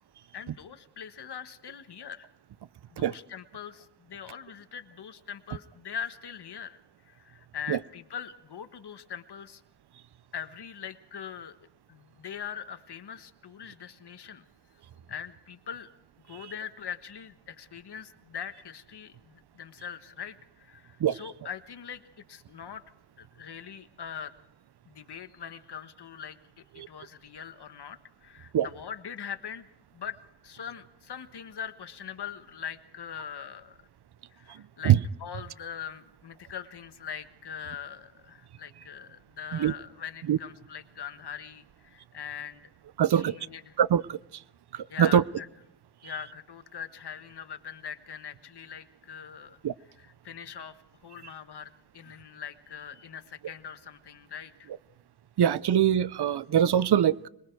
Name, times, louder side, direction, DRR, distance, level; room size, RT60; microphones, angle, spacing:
voice 1, 0.3-2.3 2.9-6.8 7.1-9.6 10.3-11.6 11.9-14.4 15.1-15.9 16.2-22.0 22.3-22.8 23.2-24.3 24.8-29.7 29.9-33.8 34.3-34.9 35.2-42.6 43.1-43.8 44.9-45.5 46.0-49.6 50.0-54.7, left 8 dB, 65° left, 1.5 m, -42 dB
voice 2, 43.0-43.4 43.8-44.2 44.7-45.2 49.6-49.7 55.4-57.3, right 10 dB, 65° right, 0.7 m, -23 dB
25.5 x 21.5 x 4.7 m
wide cardioid pair, 95°, 43 cm